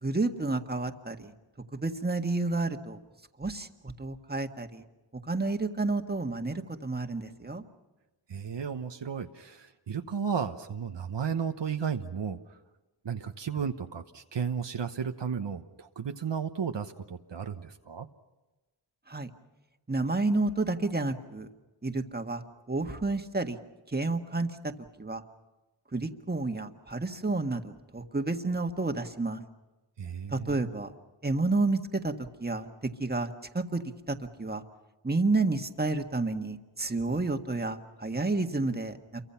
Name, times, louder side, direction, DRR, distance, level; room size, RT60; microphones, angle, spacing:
voice 1, 0.0-1.3 1.7-3.0 3.4-4.8 5.2-7.6 19.1-19.3 19.9-21.5 21.8-23.6 23.9-24.7 25.0-25.2 25.9-29.4 30.3-30.9 31.2-32.1 32.4-32.7 33.0-33.8 34.1-34.6 35.0-39.2, right 3 dB, 20° right, 5 dB, 1.7 m, -30 dB
voice 2, 8.3-12.4 13.0-18.1 30.0-30.5, right 7 dB, 65° right, 6 dB, 1.1 m, -34 dB
28.5 x 24.0 x 5.8 m, 1.1 s
wide cardioid pair, 65°, 45 cm